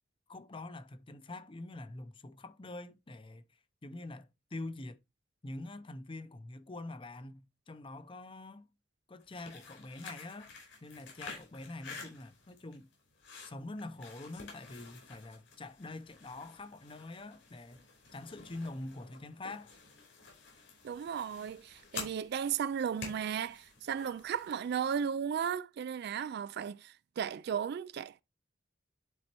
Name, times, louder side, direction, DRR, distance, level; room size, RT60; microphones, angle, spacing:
voice 1, 0.3-3.4 3.8-5.0 5.4-8.7 9.1-10.5 10.8-12.9 13.4-17.8 18.1-19.7, left 2 dB, 30° left, 0.6 m, -45 dB
sound 1, 9.2-24.8, left 4 dB, 75° left, 5.0 m, -50 dB
voice 2, 20.8-28.2, right 8 dB, 60° right, 0.3 m, -35 dB
11.0 x 4.3 x 3.0 m
head